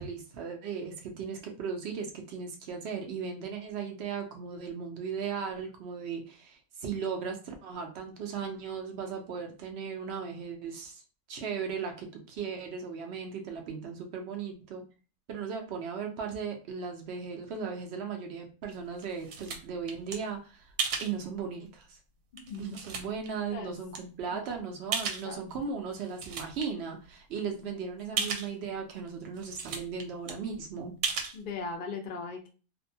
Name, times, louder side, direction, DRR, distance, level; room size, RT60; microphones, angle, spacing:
voice 1, 0.0-11.0 11.3-14.8 15.3-20.7 21.0-22.0 22.6-30.9, right 6 dB, 65° right, 3 dB, 0.6 m, -37 dB
sound 1, 18.6-20.2 20.8-21.1 21.8-21.9 22.4-23.3 23.9-24.0 24.9-25.5 25.9-26.6 27.1-27.2 27.4-27.5 28.2-28.5 29.1-29.2 29.4-30.0 30.3-30.4 31.0-31.4, right 5 dB, 85° right, 1.1 m, -34 dB
voice 2, 22.3-22.8 23.5-23.7 24.3-24.6 25.2-25.4 27.6-27.8 28.1-28.3 31.3-32.5, left 4 dB, 65° left, 3 dB, 0.5 m, -39 dB
2.6 x 2.1 x 2.6 m, 0.34 s
omnidirectional pair, 1.6 m